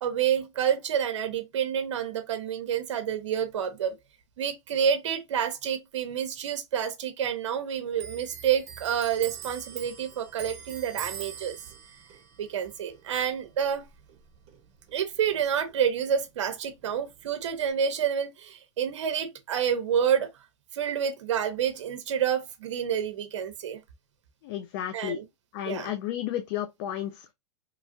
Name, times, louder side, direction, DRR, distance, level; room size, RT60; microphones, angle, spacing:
voice 1, 0.0-3.9 4.4-11.6 12.4-13.8 14.9-20.3 20.7-23.8 24.9-25.2 25.7-25.9, right 8 dB, 80° right, 0.6 m, -28 dB
Clock, 7.9-15.0 15.3-16.6 16.9-17.7, right 8 dB, 40° right, 0.9 m, -44 dB
voice 2, 24.4-25.2 25.5-27.3, left 11 dB, 50° left, 0.5 m, -32 dB
3.0 x 2.3 x 2.5 m
hypercardioid pair, 130°, 15 cm